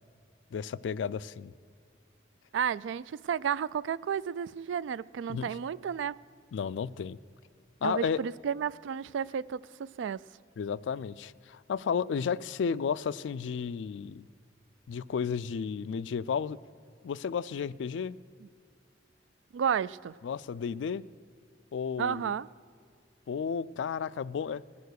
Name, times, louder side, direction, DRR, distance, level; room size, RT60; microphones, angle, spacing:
voice 1, 0.5-1.5 5.3-5.5 6.5-7.2 7.8-8.2 10.6-14.2 14.9-16.6 17.0-18.2 20.2-21.0 21.7-22.3 23.3-24.6, left 6 dB, 80° left, 0.3 m, -33 dB
voice 2, 2.5-6.2 7.8-10.2 19.5-20.1 22.0-22.5, right 7 dB, 80° right, 0.3 m, -32 dB
20.5 x 6.9 x 6.5 m
head